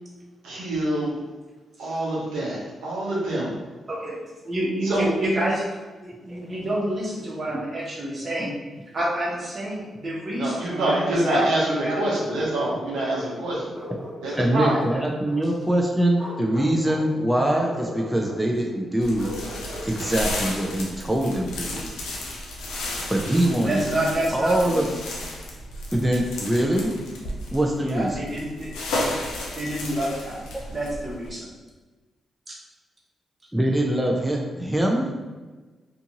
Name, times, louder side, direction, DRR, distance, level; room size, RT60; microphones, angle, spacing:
voice 1, 0.4-1.2 1.8-3.5 4.8-5.1 10.4-13.7 14.2-14.7, right 1 dB, 85° right, -6 dB, 0.7 m, -26 dB
voice 2, 4.4-5.6 6.0-8.5 8.9-12.0 14.3-14.4 14.7-15.0 23.5-24.9 27.8-28.7 29.6-30.4 30.7-31.5 32.5-32.6, right 1 dB, 45° right, -5 dB, 1.0 m, -28 dB
Bark, 11.7-13.3 13.7-15.5 16.1-17.1 17.4-18.4 19.2-20.8, left 1 dB, 20° right, 1.2 m, -38 dB
voice 3, 14.3-19.3 19.8-21.9 23.1-23.8 24.3-24.8 25.9-26.9 27.5-28.2 33.5-35.1, right 1 dB, 5° right, -1 dB, 0.5 m, -23 dB
sound 1, 19.0-31.3, left 1 dB, 85° left, 0.5 m, -33 dB
2.6 x 2.5 x 2.8 m, 1.3 s
supercardioid pair, 45°, 0 cm